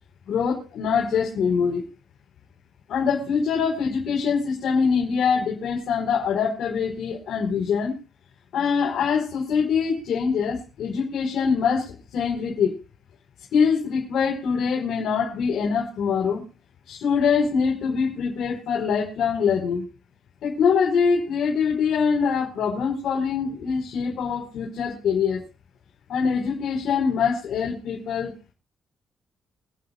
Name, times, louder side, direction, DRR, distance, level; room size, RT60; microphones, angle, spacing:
voice 1, 0.3-1.8 2.9-7.9 8.5-12.7 13.5-16.4 16.9-19.8 20.4-25.4 26.1-28.3, left 6 dB, 75° left, -1 dB, 4.9 m, -24 dB
27.5 x 9.5 x 2.5 m, 0.32 s
cardioid pair, 100°, 0 cm